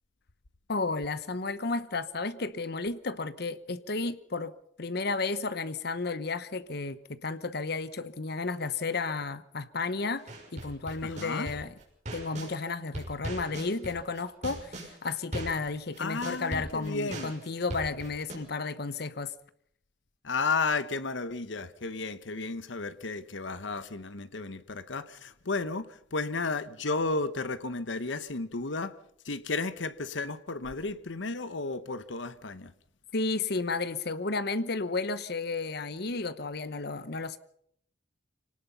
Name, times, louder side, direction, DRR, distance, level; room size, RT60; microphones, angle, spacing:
voice 1, 0.7-4.5 4.8-10.2 10.5-11.7 12.1-19.3 33.1-37.4, left 3 dB, 60° left, 1.0 m, -32 dB
sound 1, 10.3-12.5 12.9-18.4, right 1 dB, 40° right, 6.1 m, -39 dB
voice 2, 11.0-11.5 16.0-17.3 20.2-29.0 29.2-32.7, left 3 dB, 80° left, 1.1 m, -33 dB
25.5 x 18.5 x 5.6 m
head